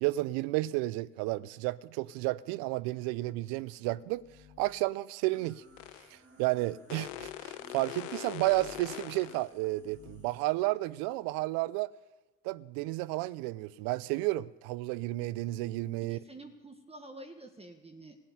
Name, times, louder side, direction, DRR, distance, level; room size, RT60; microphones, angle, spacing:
voice 1, 0.0-4.2 4.6-5.6 6.1-11.9 12.4-16.2, right 18 dB, 70° right, 0.6 m, -32 dB
sound 1, 3.9-4.9 5.6-6.0 7.0-7.4 8.3-9.0 9.7-10.4, left 7 dB, 55° left, 1.8 m, -57 dB
sound 2, 5.3-10.4, right 2 dB, 35° right, 4.3 m, -60 dB
sound 3, 5.8-6.1 6.9-9.5, left 13 dB, 85° left, 1.0 m, -42 dB
voice 2, 16.0-18.2, right 2 dB, 15° right, 1.6 m, -49 dB
15.0 x 7.7 x 9.6 m
hypercardioid pair, 70°, 37 cm